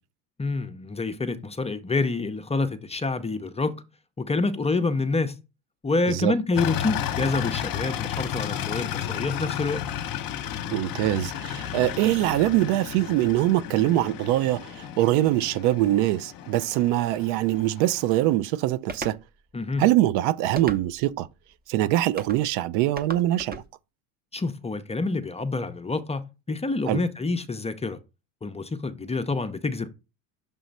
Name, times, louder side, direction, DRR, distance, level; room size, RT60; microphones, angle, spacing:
voice 1, 0.4-3.7 4.2-5.3 5.8-9.8 19.5-19.8 24.3-28.0 28.4-29.9, left 3 dB, 15° left, 0.5 m, -27 dB
sound 1, 6.6-18.3, left 10 dB, 45° left, 0.8 m, -33 dB
voice 2, 10.7-19.2 19.8-21.3 21.7-23.6 26.9-27.0, right 14 dB, 70° right, 0.6 m, -23 dB
sound 2, 18.9-19.2 20.6-21.1 22.2-22.4 23.0-23.7, right 2 dB, 20° right, 0.7 m, -36 dB
6.8 x 3.0 x 5.2 m
supercardioid pair, 90°, 48 cm